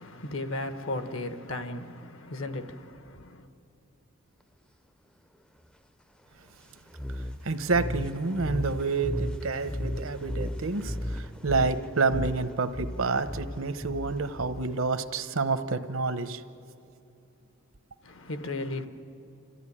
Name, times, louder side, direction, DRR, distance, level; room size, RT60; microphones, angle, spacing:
voice 1, 0.0-3.5 18.0-18.9, left 2 dB, 65° left, 1.3 m, -35 dB
sound 1, 6.9-14.9, left 1 dB, 5° left, 0.5 m, -35 dB
voice 2, 7.1-16.4, right 4 dB, 70° right, 0.9 m, -29 dB
28.0 x 14.0 x 10.0 m
head